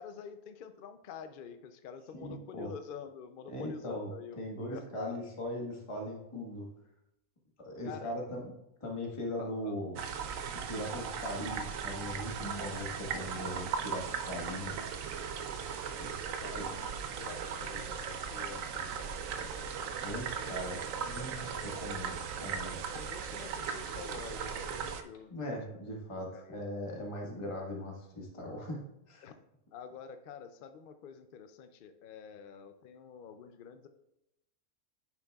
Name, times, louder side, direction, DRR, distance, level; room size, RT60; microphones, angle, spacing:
voice 1, 0.0-5.2 7.8-8.2 9.4-9.7 16.4-19.9 20.5-20.6 22.9-25.3 25.7-25.8 26.3-26.6 29.2-29.3 29.7-33.9, left 7 dB, 75° left, 8 dB, 0.4 m, -48 dB
voice 2, 2.1-2.7 3.5-4.1 4.4-6.7 7.6-8.5 8.8-10.0 10.5-14.7 16.0-16.1 16.5-16.6 20.0-22.8 25.3-29.3, equal, 20° left, -1 dB, 1.3 m, -39 dB
sound 1, 10.0-25.0, right 6 dB, 70° right, 1.0 m, -38 dB
9.4 x 7.1 x 2.3 m, 0.85 s
omnidirectional pair, 1.5 m